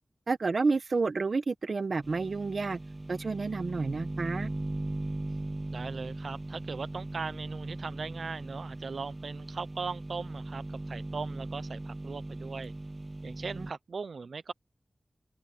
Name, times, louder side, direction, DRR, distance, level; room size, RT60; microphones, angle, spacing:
voice 1, 0.3-2.8 3.1-4.5 13.6-13.7, right 4 dB, 70° right, 1.0 m, -30 dB
sound 1, 2.0-13.7, right 2 dB, 30° right, 0.5 m, -39 dB
voice 2, 5.7-12.7 13.2-14.5, right 4 dB, 90° right, 0.5 m, -39 dB
open air
wide cardioid pair, 70°, 0 cm